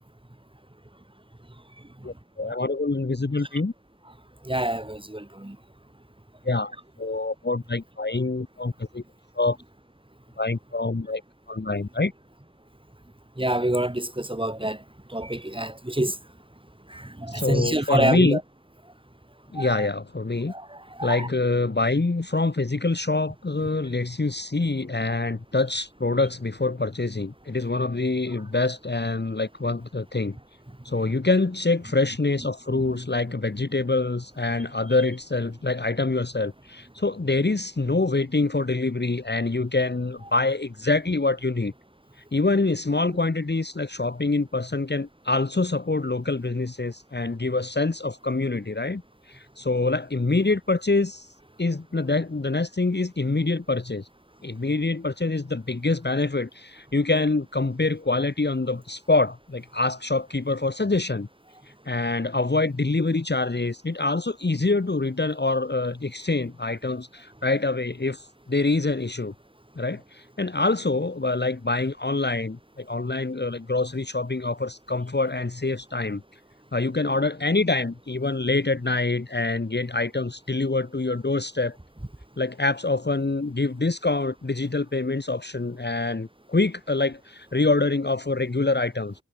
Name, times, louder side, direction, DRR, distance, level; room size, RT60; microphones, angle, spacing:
voice 1, 2.0-3.7 6.4-6.7 7.0-9.0 9.3-9.6 10.4-11.2 11.5-12.1 17.3-18.4 19.5-20.5 21.0-30.4 30.8-41.7 42.3-49.0 49.3-51.3 51.6-54.1 54.4-61.3 61.8-69.3 69.8-76.2 76.7-81.8 82.4-89.1, left 3 dB, 35° left, 1.5 m, -25 dB
voice 2, 4.4-5.6 13.4-14.8 15.1-16.2 16.9-18.4 19.6-19.9 20.5-21.3, right 1 dB, 15° right, 4.1 m, -27 dB
wide cardioid pair, 55°, 32 cm